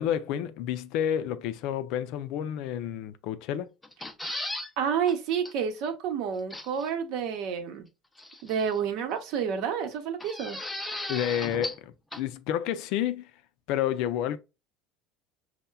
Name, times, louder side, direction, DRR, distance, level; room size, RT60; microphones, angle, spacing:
voice 1, 0.0-3.7 11.1-13.3 13.7-14.4, left 10 dB, 70° left, 0.4 m, -30 dB
sound 1, 3.8-4.7 5.1-5.2 5.5-5.6 6.5-6.9 8.2-8.8 10.2-11.9 12.1-12.2, left 1 dB, 10° left, 0.5 m, -36 dB
voice 2, 4.8-7.9 8.4-10.6, right 7 dB, 65° right, 0.8 m, -29 dB
5.4 x 2.1 x 2.2 m
supercardioid pair, 115°, 0 cm